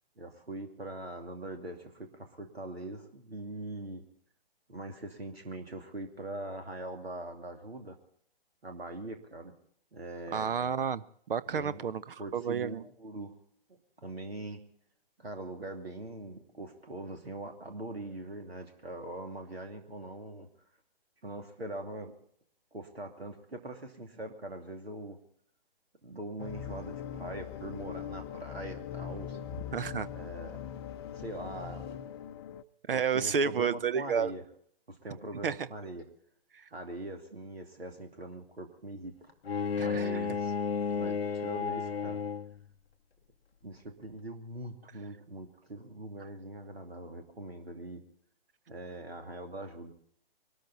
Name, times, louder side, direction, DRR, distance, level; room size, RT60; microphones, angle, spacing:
voice 1, 0.2-4.0 4.7-8.0 8.6-9.5 9.9-10.5 11.5-11.8 12.2-13.3 13.7-14.6 15.2-20.5 21.2-22.1 22.7-25.2 26.0-29.4 30.1-30.8 31.1-32.0 32.9-34.4 34.9-36.1 36.7-39.2 39.8-40.5 40.9-42.2 43.6-48.0 48.7-49.9, right 1 dB, 80° right, 2.8 m, -42 dB
voice 2, 10.3-12.8 29.7-30.1 32.9-34.3 35.4-35.7 36.5-36.7 39.8-40.2, right 6 dB, 65° right, 0.9 m, -31 dB
sound 1, 26.4-32.6, left 9 dB, 25° left, 0.6 m, -41 dB
Bowed string instrument, 39.4-42.7, left 6 dB, 80° left, 0.7 m, -32 dB
23.0 x 13.0 x 4.2 m
figure-of-eight pair, 130°, 30 cm